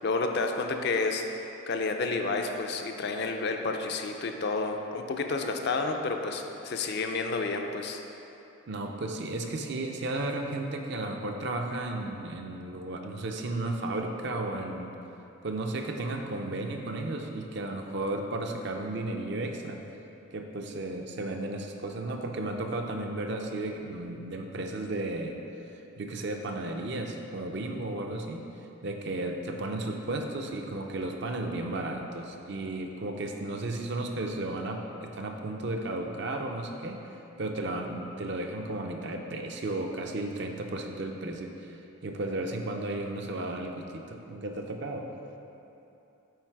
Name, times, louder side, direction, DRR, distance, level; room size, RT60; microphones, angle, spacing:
voice 1, 0.0-1.2 1.7-8.0, left 3 dB, 50° left, 4 dB, 0.4 m, -30 dB
voice 2, 8.7-14.9 15.4-19.8 20.3-25.4 26.0-28.5 28.8-37.0 37.4-45.1, right 2 dB, 50° right, 3 dB, 0.5 m, -34 dB
8.0 x 4.1 x 4.6 m, 2.9 s
head